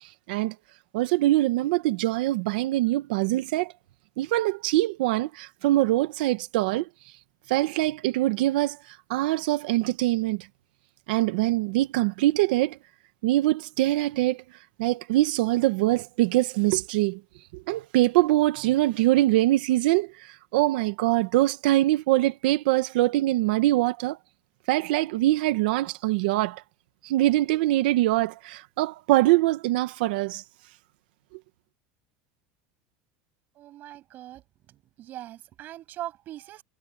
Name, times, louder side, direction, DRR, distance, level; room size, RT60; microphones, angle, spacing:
voice 1, 0.9-3.7 4.2-6.9 7.5-8.8 9.1-10.5 11.1-12.8 13.2-14.4 14.8-17.2 17.5-20.1 20.5-24.2 24.7-26.6 27.0-30.4, right 16 dB, 75° right, 1.4 m, -23 dB
voice 2, 33.6-34.4 35.0-36.6, right 14 dB, 40° right, 7.4 m, -40 dB
supercardioid pair, 160°, 5 cm